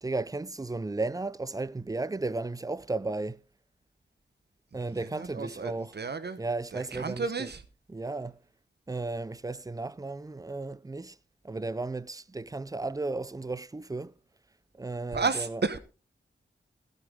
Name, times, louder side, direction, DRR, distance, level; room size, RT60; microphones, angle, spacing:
voice 1, 0.0-3.4 4.7-6.0 6.4-7.5 7.9-8.3 8.9-11.2 11.4-14.1 14.7-15.6, right 3 dB, 15° right, 0.5 m, -34 dB
voice 2, 5.1-6.4 6.7-7.6 15.1-15.8, right 4 dB, 55° right, 0.9 m, -32 dB
15.5 x 9.2 x 3.6 m
wide cardioid pair, 80°, 20 cm